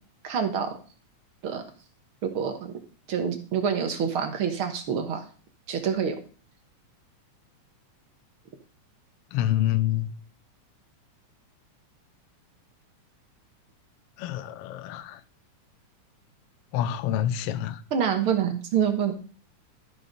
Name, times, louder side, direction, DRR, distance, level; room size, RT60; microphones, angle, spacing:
voice 1, 0.2-0.7 1.4-1.6 2.2-2.7 3.1-5.2 5.7-6.2 17.9-19.1, right 7 dB, 55° right, 1.7 m, -26 dB
voice 2, 9.3-10.1 14.2-15.2 16.7-17.8, left 12 dB, 80° left, 1.3 m, -27 dB
12.5 x 5.7 x 5.2 m
omnidirectional pair, 3.6 m